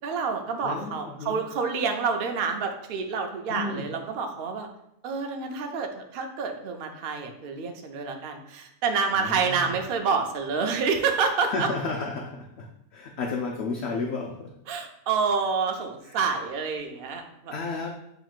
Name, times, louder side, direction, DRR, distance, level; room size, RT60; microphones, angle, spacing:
voice 1, 0.0-4.7 5.0-11.7 14.7-17.6, right 5 dB, 65° right, 4 dB, 0.5 m, -28 dB
voice 2, 0.6-1.4 3.5-3.8 9.2-9.7 11.4-14.5 16.1-16.2 17.5-17.9, left 3 dB, 65° left, 1 dB, 0.6 m, -32 dB
7.4 x 3.0 x 2.4 m, 0.79 s
omnidirectional pair, 1.6 m